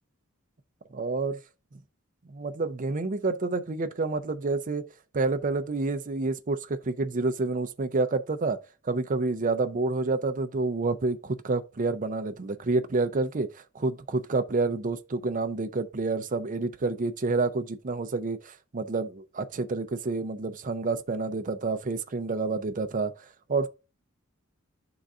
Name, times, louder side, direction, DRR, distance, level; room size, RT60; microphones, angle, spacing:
voice 1, 0.9-1.4 2.3-4.8 5.1-8.6 8.8-23.1 23.5-23.7, right 3 dB, 40° right, 0.5 m, -28 dB
11.5 x 3.9 x 2.4 m
head